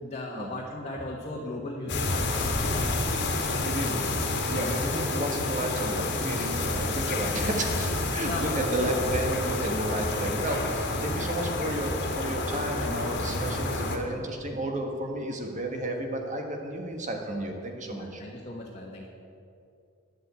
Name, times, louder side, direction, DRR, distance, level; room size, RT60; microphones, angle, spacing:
voice 1, 0.0-4.1 8.2-8.9 11.1-11.3 14.1-14.3 17.8-19.1, left 1 dB, 30° left, -3 dB, 1.4 m, -38 dB
sound 1, 1.9-14.0, left 2 dB, 55° left, 1.7 m, -29 dB
sound 2, 3.1-4.0 4.3-6.7, equal, 85° right, 2.6 m, -46 dB
voice 2, 3.6-4.0 4.5-18.2, right 1 dB, 35° right, 2 dB, 1.6 m, -32 dB
10.5 x 7.6 x 8.2 m, 2.4 s
head